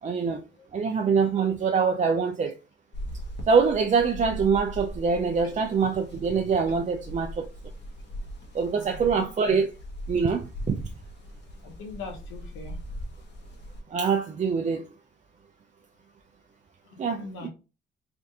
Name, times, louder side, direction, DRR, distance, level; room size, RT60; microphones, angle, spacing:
voice 1, 0.0-0.4 0.7-2.6 3.5-7.5 8.5-9.7 10.1-10.8 13.9-14.9 17.0-17.5, right 5 dB, 35° right, 0.5 m, -24 dB
sound 1, 2.9-13.8, equal, 60° left, 1.2 m, -40 dB
voice 2, 8.7-9.3 11.6-12.8 17.1-17.5, left 3 dB, 90° left, 1.1 m, -41 dB
3.5 x 2.6 x 3.7 m
cardioid pair, 90°, 20 cm